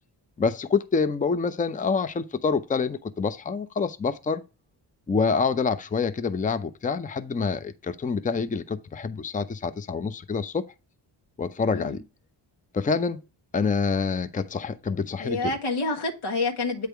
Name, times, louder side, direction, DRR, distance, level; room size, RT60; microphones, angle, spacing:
voice 1, 0.4-4.4 5.1-10.7 11.4-12.0 12.7-13.2 13.5-15.5, left 5 dB, 15° left, 0.5 m, -26 dB
voice 2, 11.7-12.0 15.2-16.9, left 3 dB, 75° left, 1.7 m, -28 dB
8.2 x 3.4 x 4.5 m
supercardioid pair, 45°, 50 cm